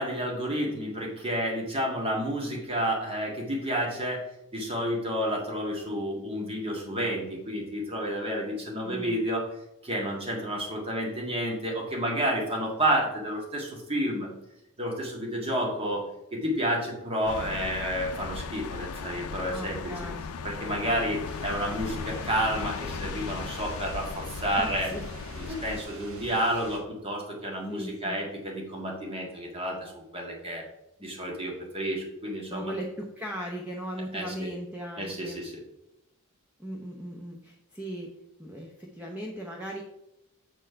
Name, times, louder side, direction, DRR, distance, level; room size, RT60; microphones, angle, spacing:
voice 1, 0.0-4.3 4.5-9.5 9.8-14.3 14.8-16.1 16.3-19.9 20.4-24.9 25.3-30.7 31.0-32.7 34.1-34.5 35.0-35.6, equal, 25° right, -1 dB, 1.8 m, -30 dB
voice 2, 8.8-9.2 19.5-20.3 24.5-25.0 25.5-25.6 27.7-28.2 32.5-35.4 36.6-38.1 38.4-39.8, equal, 5° right, -1 dB, 0.8 m, -37 dB
sound 1, 17.3-25.8, left 5 dB, 80° left, 0.5 m, -37 dB
sound 2, 21.2-26.8, right 1 dB, 75° right, 1.7 m, -45 dB
7.4 x 4.5 x 5.6 m, 0.87 s
head